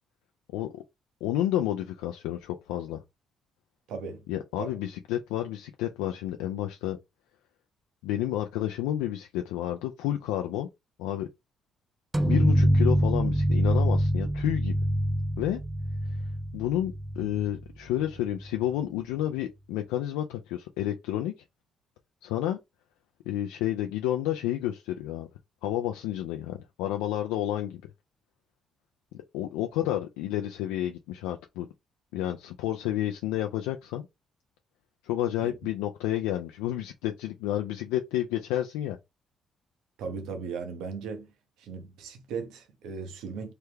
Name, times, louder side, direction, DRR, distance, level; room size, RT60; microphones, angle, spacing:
voice 1, 0.5-0.8 1.2-3.0 4.3-7.0 8.0-10.7 11.0-11.3 12.2-14.8 15.4-15.6 16.1-16.2 16.5-21.3 22.2-22.6 23.3-25.3 25.6-27.8 29.1-31.7 32.1-34.0 35.0-39.0, left 12 dB, 90° left, 0.3 m, -30 dB
voice 2, 3.9-4.3 4.6-4.7 35.4-35.6 40.0-41.3 41.6-43.5, right 5 dB, 80° right, 0.7 m, -37 dB
sound 1, 12.1-17.7, equal, 20° right, 0.4 m, -25 dB
3.3 x 2.2 x 3.1 m
supercardioid pair, 65°, 0 cm